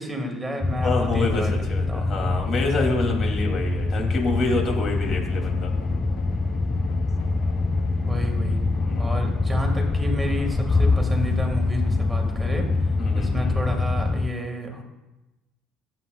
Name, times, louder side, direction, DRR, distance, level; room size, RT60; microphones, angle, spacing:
voice 1, 0.0-2.1 8.0-8.6 9.0-12.7 13.1-14.8, equal, 10° right, 3 dB, 2.1 m, -31 dB
sound 1, 0.6-14.3, left 3 dB, 15° left, 0.4 m, -24 dB
voice 2, 0.8-5.7 8.8-9.2 13.0-13.6, left 3 dB, 45° left, 1 dB, 3.1 m, -27 dB
Drum, 5.0-14.0, left 5 dB, 80° left, 1.1 m, -42 dB
16.0 x 7.8 x 2.5 m, 1.0 s
supercardioid pair, 100°, 0 cm